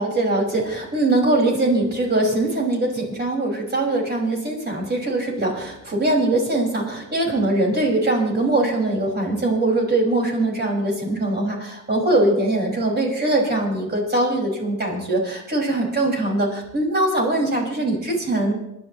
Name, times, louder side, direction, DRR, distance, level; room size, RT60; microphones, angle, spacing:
voice 1, 0.0-18.5, right 2 dB, 35° right, -1 dB, 6.0 m, -22 dB
27.0 x 11.5 x 3.2 m, 0.85 s
cardioid pair, 90°, 30 cm